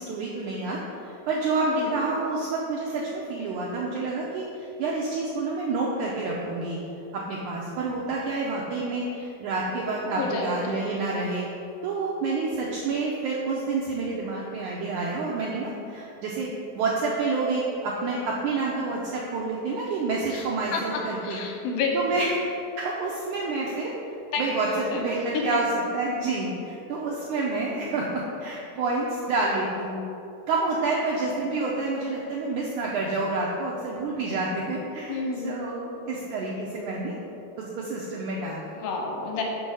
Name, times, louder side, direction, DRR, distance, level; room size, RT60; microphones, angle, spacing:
voice 1, 0.0-6.8 7.1-11.5 11.8-16.5 16.8-21.4 21.9-23.9 24.4-30.0 30.5-35.2 35.4-37.1 37.6-38.7, right 3 dB, 85° right, -4 dB, 1.7 m, -28 dB
voice 2, 1.7-2.0 10.0-10.7 20.3-20.5 20.7-22.2 24.3-25.5 35.1-35.5 38.8-39.4, left 4 dB, 75° left, 0 dB, 2.6 m, -30 dB
6.2 x 6.1 x 5.3 m, 2.8 s
omnidirectional pair, 4.4 m